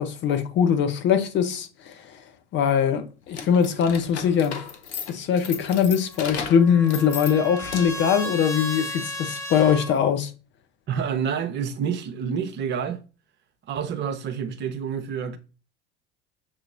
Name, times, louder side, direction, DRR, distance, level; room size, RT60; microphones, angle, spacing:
voice 1, 0.0-1.9 2.5-4.6 5.1-10.3, left 7 dB, 35° left, 0.7 m, -22 dB
sound 1, 3.3-8.1, left 6 dB, 75° left, 0.7 m, -35 dB
Trumpet, 6.1-9.9, left 2 dB, 10° left, 1.0 m, -34 dB
voice 2, 10.9-13.0 13.7-15.4, right 7 dB, 30° right, 0.8 m, -28 dB
6.2 x 2.9 x 2.6 m
figure-of-eight pair, 75°, 34 cm